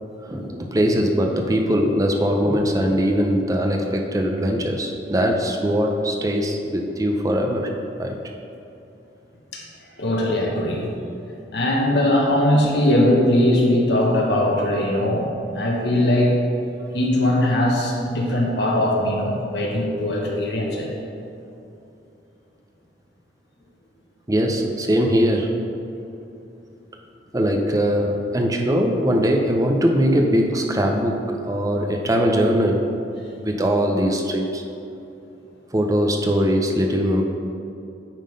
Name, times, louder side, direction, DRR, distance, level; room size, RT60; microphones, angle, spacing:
voice 1, 0.3-7.7 8.0-8.2 24.3-25.5 27.3-32.8 33.4-34.6 35.7-37.2, equal, 20° right, 1 dB, 0.5 m, -21 dB
voice 2, 10.0-10.9 11.5-15.3 15.5-16.4 16.9-20.9, left 1 dB, 70° left, -1 dB, 1.3 m, -20 dB
9.1 x 3.8 x 5.2 m, 2.8 s
head